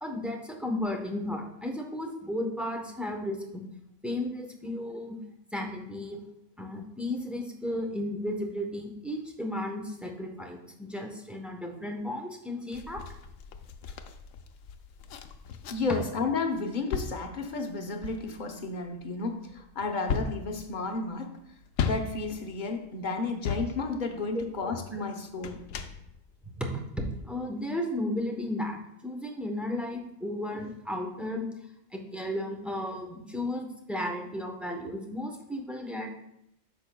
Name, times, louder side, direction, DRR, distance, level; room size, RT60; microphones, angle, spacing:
voice 1, 0.0-3.6 4.0-5.2 5.5-6.2 6.6-13.0 13.9-14.0 24.9-25.0 26.6-31.5 31.9-36.1, left 1 dB, ahead, 1 dB, 0.7 m, -34 dB
sound 1, 12.7-16.1 16.5-24.6 25.3-26.5 27.1-27.2, left 6 dB, 80° left, 1.0 m, -37 dB
voice 2, 15.7-21.3 21.8-25.6, left 3 dB, 40° left, 4 dB, 0.9 m, -32 dB
10.5 x 6.8 x 2.2 m, 0.79 s
omnidirectional pair, 1.4 m